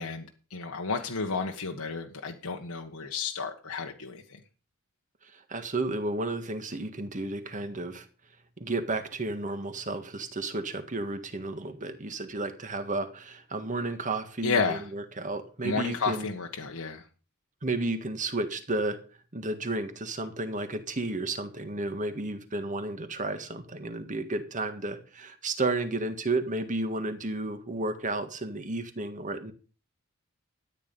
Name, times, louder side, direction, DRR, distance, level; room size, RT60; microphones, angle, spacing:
voice 1, 0.0-4.4 14.4-14.9 15.6-17.0, left 4 dB, 80° left, 1 dB, 1.5 m, -32 dB
voice 2, 5.3-8.1 8.6-16.3 17.6-19.0 19.3-29.5, right 2 dB, 35° right, 8 dB, 1.7 m, -32 dB
13.0 x 9.5 x 5.4 m, 0.37 s
head